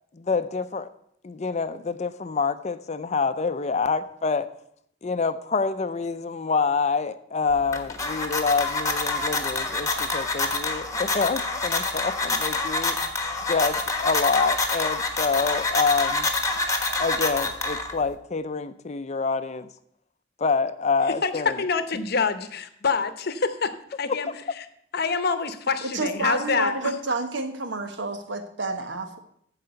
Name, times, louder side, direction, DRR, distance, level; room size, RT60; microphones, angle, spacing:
voice 1, 0.1-0.9 1.2-4.5 5.0-13.0 13.5-16.3 17.0-19.7 20.4-21.6, left 4 dB, 40° left, 11 dB, 0.5 m, -26 dB
sound 1, 7.5-18.1, left 3 dB, 15° left, 1.2 m, -27 dB
voice 2, 21.2-24.3 24.6-24.7 24.9-26.9, left 5 dB, 60° left, 11 dB, 0.8 m, -26 dB
voice 3, 25.9-29.2, right 2 dB, 70° right, 7 dB, 1.3 m, -29 dB
14.5 x 4.9 x 6.9 m, 0.69 s
head